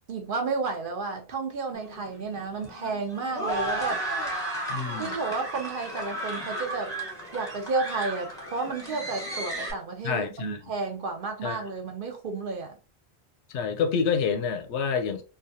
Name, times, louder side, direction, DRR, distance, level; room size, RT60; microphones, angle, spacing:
voice 1, 0.1-4.0 5.0-6.9 7.3-12.7, right 4 dB, 55° right, 0.7 m, -32 dB
sound 1, 1.7-9.7, right 1 dB, 5° left, 0.9 m, -34 dB
voice 2, 4.7-5.2 10.0-10.6 11.4-11.6 13.5-15.2, left 6 dB, 90° left, 0.9 m, -28 dB
3.1 x 2.3 x 2.6 m
omnidirectional pair, 1.1 m